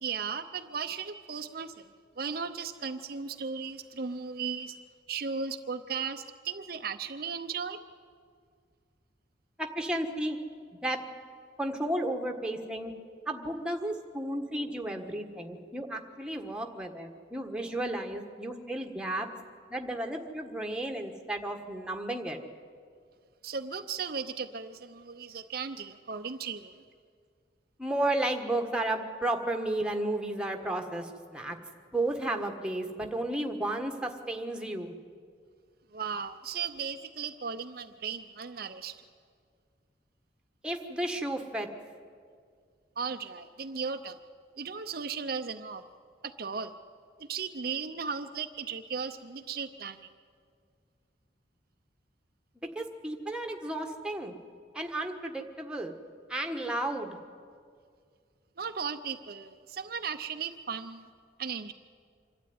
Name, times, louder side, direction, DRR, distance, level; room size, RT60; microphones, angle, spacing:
voice 1, 0.0-1.9 2.2-4.8 5.1-7.8 23.4-26.8 35.9-38.9 43.0-44.2 44.6-45.8 46.2-46.7 47.2-50.1 58.6-61.0 61.4-61.7, right 6 dB, 50° right, 7 dB, 0.6 m, -36 dB
voice 2, 9.6-10.4 10.8-11.0 11.6-12.9 13.3-19.3 19.7-22.4 27.8-31.6 31.9-34.9 40.6-41.7 52.7-54.3 54.7-55.9 56.3-57.2, right 1 dB, 5° right, 3 dB, 1.4 m, -33 dB
25.5 x 12.5 x 9.5 m, 2.1 s
head